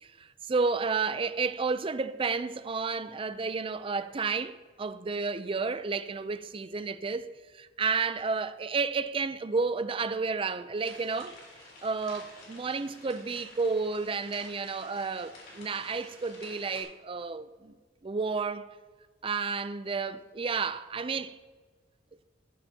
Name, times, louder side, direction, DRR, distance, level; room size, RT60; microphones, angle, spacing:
voice 1, 0.0-11.4 11.8-17.7 18.0-18.7 19.2-21.4, right 4 dB, 30° right, 0.4 m, -31 dB
sound 1, 10.8-16.8, left 2 dB, 55° left, 3.5 m, -51 dB
14.0 x 11.0 x 2.8 m
head